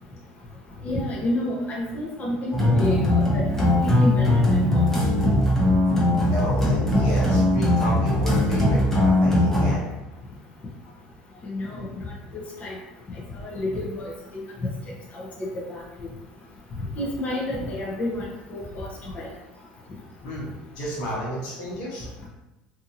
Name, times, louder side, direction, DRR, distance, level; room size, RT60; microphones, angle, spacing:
voice 1, 0.8-3.3 3.6-4.3 4.7-4.8 11.4-12.0 12.6-12.8 13.4-14.1 14.6-14.7 15.1-15.8 17.0-18.2 18.5-18.9 19.1-19.3, left 1 dB, 35° left, -4 dB, 0.8 m, -29 dB
sound 1, 2.5-9.7, left 1 dB, 5° left, 0.9 m, -20 dB
voice 2, 6.3-9.9 20.2-22.1, equal, 80° left, -6 dB, 1.1 m, -32 dB
2.8 x 2.6 x 2.5 m, 1.0 s
hypercardioid pair, 80°, 4 cm